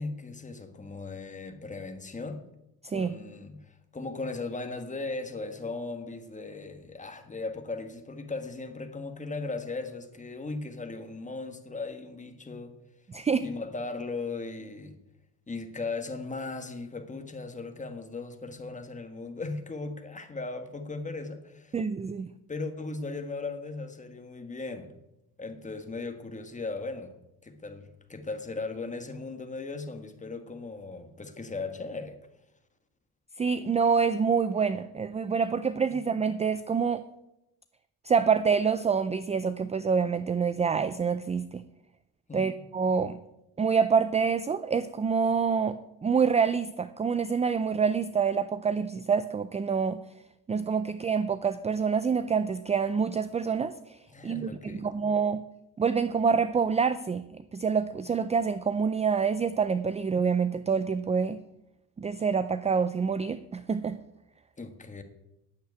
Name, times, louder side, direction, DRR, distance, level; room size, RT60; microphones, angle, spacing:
voice 1, 0.0-2.5 2.9-12.8 13.4-15.0 15.5-21.8 22.5-24.9 25.4-27.1 27.4-32.2 42.3-42.6 54.1-54.9 64.6-65.0, left 3 dB, 20° left, 1.6 m, -37 dB
voice 2, 2.8-3.1 13.1-13.5 21.7-22.3 33.4-37.0 38.0-41.6 42.3-43.2 43.6-50.0 50.5-54.0 54.2-55.4 55.8-57.2 57.5-61.4 62.0-64.0, right 6 dB, 15° right, 0.4 m, -26 dB
9.7 x 8.0 x 9.4 m
cardioid pair, 115°, 39 cm